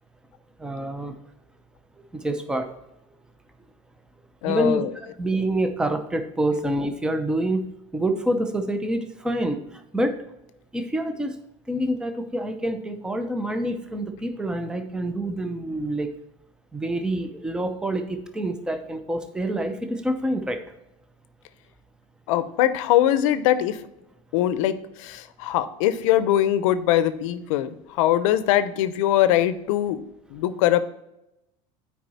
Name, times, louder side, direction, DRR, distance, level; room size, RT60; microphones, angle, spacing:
voice 1, 0.6-1.1 2.1-2.7 4.4-9.6 9.9-10.2 10.7-11.4 11.7-16.1 16.7-20.6, right 1 dB, 5° right, 7 dB, 0.7 m, -27 dB
voice 2, 4.4-4.9 22.3-23.8 24.3-30.0 30.3-30.8, left 12 dB, 90° left, 13 dB, 0.7 m, -22 dB
9.1 x 4.8 x 4.1 m, 0.87 s
cardioid pair, 145°, 16 cm